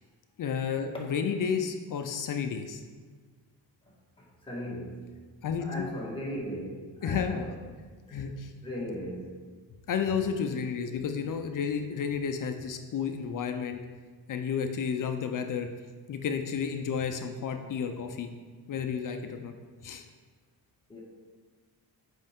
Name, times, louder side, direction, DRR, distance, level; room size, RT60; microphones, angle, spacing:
voice 1, 0.4-2.8 5.4-5.9 7.0-7.5 8.1-8.5 9.9-13.8 14.3-15.7 16.1-18.3 18.7-19.5 19.8-20.1, left 6 dB, 50° left, 6 dB, 0.6 m, -31 dB
voice 2, 3.9-5.1 5.6-7.6 8.1-8.3 8.6-9.3 20.9-21.0, equal, 15° left, -4 dB, 1.7 m, -38 dB
7.9 x 5.4 x 3.6 m, 1.5 s
cardioid pair, 125°, 40 cm